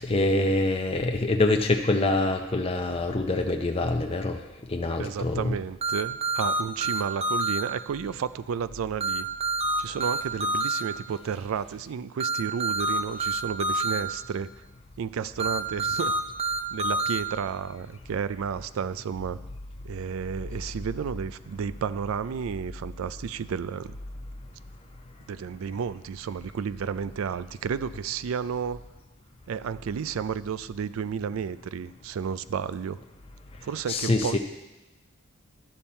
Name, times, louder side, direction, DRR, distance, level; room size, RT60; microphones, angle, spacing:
voice 1, 0.0-4.4 4.7-5.6 33.9-34.4, left 2 dB, 30° left, 3 dB, 0.5 m, -25 dB
voice 2, 5.0-9.3 9.8-14.5 15.0-16.2 16.7-19.4 19.8-24.0 25.3-28.8 29.5-33.0 33.6-34.4, right 7 dB, 80° right, 15 dB, 0.4 m, -32 dB
sound 1, 5.8-7.6 9.0-10.8 12.2-14.0 15.4-17.2, right 2 dB, 30° right, 0.6 m, -27 dB
12.0 x 7.1 x 4.3 m, 1.1 s
head